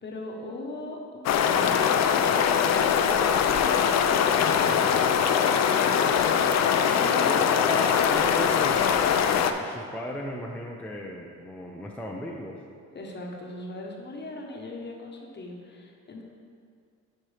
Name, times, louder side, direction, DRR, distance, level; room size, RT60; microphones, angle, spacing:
voice 1, 0.0-3.8 4.2-4.8 5.1-7.4 12.9-16.2, left 2 dB, 35° left, 0 dB, 1.1 m, -40 dB
sound 1, 1.3-9.5, left 7 dB, 60° left, 0.5 m, -22 dB
voice 2, 4.6-5.3 7.2-12.6, left 1 dB, 5° left, -1 dB, 0.5 m, -37 dB
10.0 x 4.4 x 3.4 m, 2.2 s
cardioid pair, 90°, 30 cm